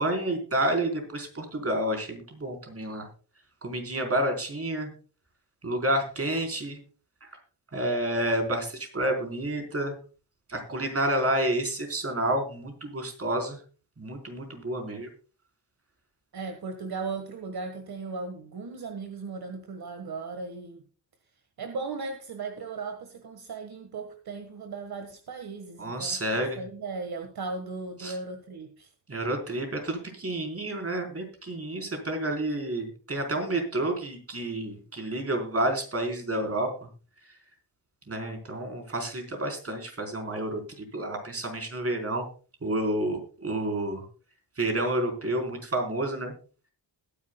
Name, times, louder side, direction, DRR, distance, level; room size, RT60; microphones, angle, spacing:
voice 1, 0.0-3.1 3.6-4.9 5.6-6.8 7.7-10.0 10.5-13.6 14.0-15.1 25.8-26.6 28.0-28.1 29.1-36.9 38.1-42.3 42.6-44.0 44.6-46.3, right 1 dB, 35° right, 3 dB, 4.1 m, -29 dB
voice 2, 16.3-20.8 21.6-28.9, right 4 dB, 55° right, 6 dB, 1.6 m, -37 dB
20.5 x 10.5 x 2.3 m, 0.37 s
wide cardioid pair, 115°, 43 cm